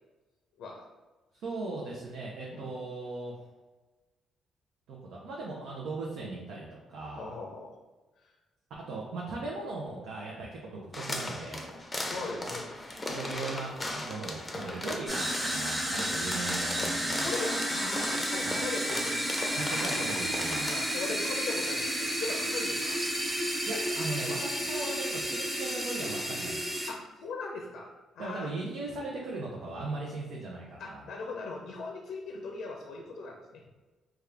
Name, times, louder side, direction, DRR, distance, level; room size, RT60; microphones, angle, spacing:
voice 1, 1.3-3.5 4.9-7.3 8.8-11.7 13.1-17.3 18.4-18.6 19.6-20.7 23.7-26.8 28.2-31.1, right 3 dB, 80° right, -3 dB, 0.6 m, -38 dB
voice 2, 7.2-7.7 8.2-8.4 12.1-13.2 17.2-19.3 20.6-23.0 26.9-27.9 28.1-28.5 30.8-33.6, left 3 dB, 80° left, 0 dB, 0.5 m, -39 dB
sound 1, 10.9-20.9, left 1 dB, 20° left, 0.5 m, -37 dB
sound 2, 15.1-26.9, equal, 10° right, 0.9 m, -32 dB
3.6 x 2.3 x 3.3 m, 1.2 s
cardioid pair, 90°, 0 cm